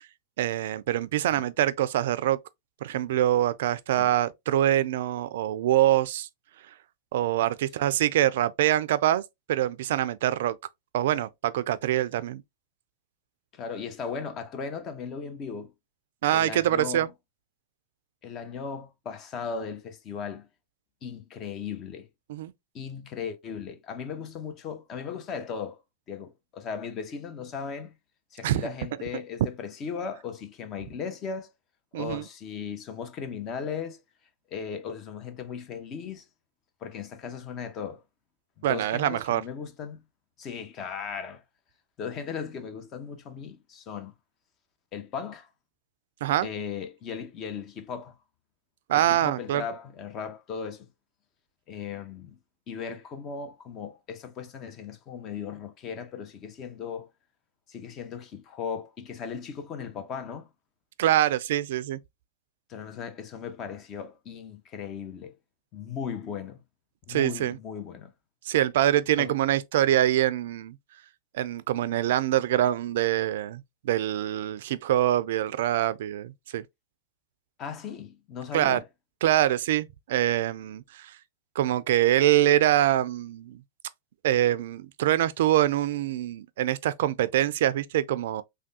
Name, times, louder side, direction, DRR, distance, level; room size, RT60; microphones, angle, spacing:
voice 1, 0.4-2.4 2.8-6.3 7.1-9.2 9.5-10.6 10.9-12.4 16.2-17.1 22.3-22.5 28.4-28.6 31.9-32.2 38.6-39.4 46.2-46.5 48.9-49.6 61.0-62.0 67.1-67.6 68.5-70.8 71.3-76.6 78.5-78.8 79.2-81.1 81.6-83.6 84.2-88.4, right 12 dB, 70° right, 0.3 m, -24 dB
voice 2, 13.5-15.7 16.3-17.1 18.2-20.5 21.0-22.1 22.7-25.8 26.1-27.9 28.3-31.5 31.9-34.0 34.5-36.2 36.8-38.0 38.6-40.0 40.4-41.4 42.0-44.1 44.9-45.5 46.4-48.1 48.9-50.9 51.7-52.4 52.7-57.1 57.7-60.5 62.7-65.4 65.7-66.6 67.1-68.1 69.2-69.4 77.6-78.9, left 6 dB, 40° left, 0.7 m, -37 dB
3.4 x 2.2 x 2.7 m
hypercardioid pair, 105°, 0 cm